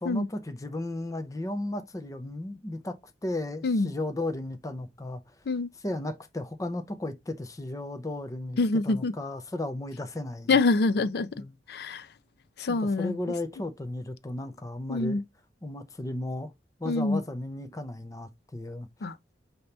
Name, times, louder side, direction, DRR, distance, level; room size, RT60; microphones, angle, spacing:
voice 1, 0.0-3.0 3.2-5.2 5.8-8.6 8.8-10.6 11.4-11.6 12.7-15.2 15.6-16.5 16.8-18.9, left 1 dB, 20° left, 0.6 m, -35 dB
voice 2, 8.6-9.1 10.5-11.3 11.7-12.1 12.6-13.2 14.9-15.2 16.9-17.2 19.0-19.1, left 3 dB, 65° left, 0.5 m, -25 dB
5.3 x 2.9 x 3.3 m
head